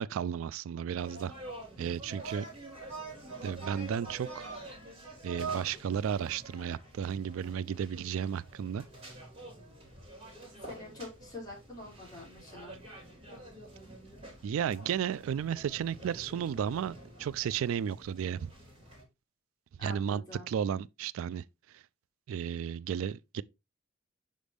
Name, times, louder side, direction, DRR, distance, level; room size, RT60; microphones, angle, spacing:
voice 1, 0.0-1.3 1.8-2.5 3.4-4.5 5.2-8.8 14.4-18.5 19.8-21.4 21.7-21.8 22.3-23.4, right 8 dB, 90° right, 0.3 m, -33 dB
sound 1, 1.0-19.0, right 2 dB, 30° right, 4.0 m, -46 dB
voice 2, 10.6-12.7 19.8-20.5, left 2 dB, 20° left, 4.2 m, -46 dB
6.5 x 5.1 x 3.4 m
head